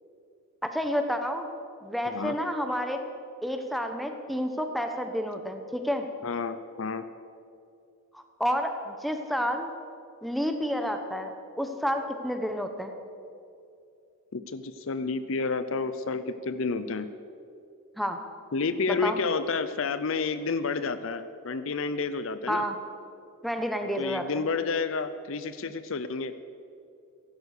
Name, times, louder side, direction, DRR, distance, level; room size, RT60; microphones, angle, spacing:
voice 1, 0.6-1.5 1.8-3.0 3.4-6.1 8.1-9.7 10.2-12.9 18.0-18.2 18.9-19.2 22.5-22.8 23.4-24.5, equal, ahead, 5 dB, 1.0 m, -30 dB
voice 2, 6.2-7.1 14.3-17.1 18.5-22.6 24.0-26.3, left 4 dB, 65° left, 12 dB, 0.6 m, -30 dB
15.5 x 11.5 x 6.6 m, 2.5 s
head